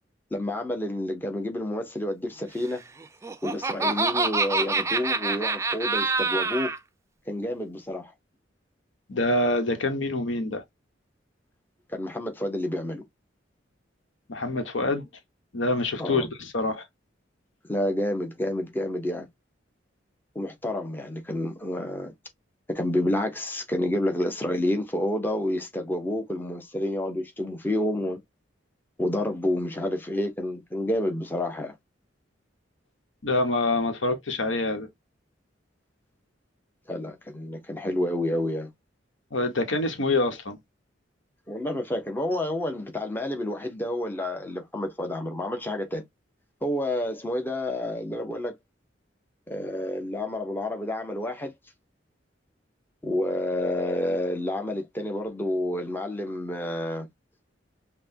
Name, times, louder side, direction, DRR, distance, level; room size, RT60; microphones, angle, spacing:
voice 1, 0.3-2.8 3.4-6.7 7.3-8.1 11.9-13.0 16.0-16.3 17.6-19.3 20.3-22.1 22.7-28.2 29.0-31.7 36.9-38.7 41.5-46.0 46.6-48.5 49.5-51.5 53.0-57.1, left 1 dB, 10° left, 0.8 m, -29 dB
Laughter, 3.0-6.8, right 3 dB, 15° right, 0.4 m, -26 dB
voice 2, 9.1-10.6 14.3-15.1 15.5-16.8 33.2-34.9 39.3-40.6, left 2 dB, 85° left, 1.0 m, -26 dB
5.7 x 2.2 x 2.7 m
head